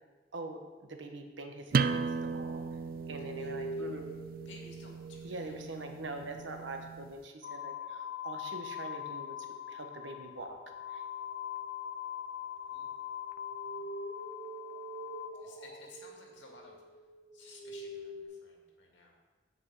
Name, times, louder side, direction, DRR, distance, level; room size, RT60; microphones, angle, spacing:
voice 1, 0.3-2.6 3.1-4.1 5.2-9.4 9.7-10.6 10.9-11.0, right 2 dB, 85° right, 4 dB, 1.2 m, -43 dB
sound 1, 1.7-7.1, right 5 dB, 50° right, 0.4 m, -36 dB
sound 2, 2.3-6.3 10.4-11.9 12.7-18.3, right 2 dB, 30° right, 2.7 m, -46 dB
voice 2, 3.2-3.9 4.4-5.7 10.2-10.3 12.6-13.0 15.3-17.1 17.3-19.2, left 3 dB, 80° left, 0 dB, 2.2 m, -56 dB
sound 3, 7.4-15.9, left 10 dB, 50° left, 0.4 m, -42 dB
9.6 x 8.0 x 4.7 m, 1.3 s
head